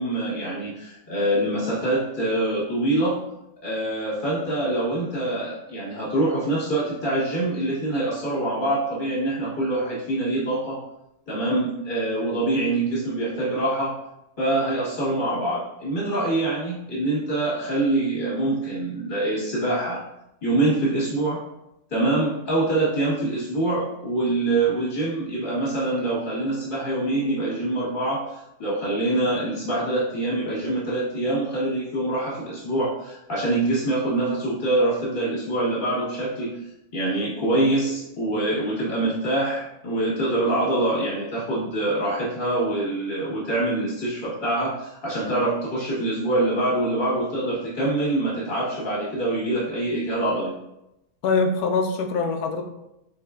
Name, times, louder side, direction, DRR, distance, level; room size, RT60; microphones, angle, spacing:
voice 1, 0.0-3.2 3.6-10.8 11.3-13.9 14.4-20.0 20.4-21.4 21.9-36.5 36.9-50.5, right 2 dB, 35° left, -6 dB, 1.6 m, -25 dB
voice 2, 51.2-52.6, left 4 dB, 90° left, 4 dB, 1.1 m, -23 dB
4.5 x 3.9 x 2.4 m, 0.88 s
omnidirectional pair, 1.6 m